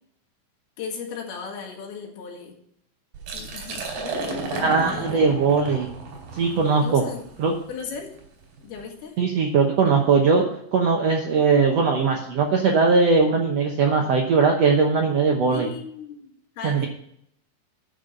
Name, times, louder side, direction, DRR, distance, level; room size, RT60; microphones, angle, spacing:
voice 1, 0.8-2.6 3.3-5.3 6.8-7.2 7.7-8.2 8.6-9.2 15.5-16.9, left 6 dB, 85° left, 2 dB, 3.7 m, -36 dB
Liquid, 3.1-8.9, right 3 dB, 90° right, 4.6 m, -34 dB
voice 2, 4.6-5.9 6.3-7.0 7.4-7.5 9.2-15.7 16.6-16.9, right 4 dB, 70° right, 1 dB, 1.5 m, -20 dB
10.0 x 5.5 x 6.7 m, 0.69 s
omnidirectional pair, 4.3 m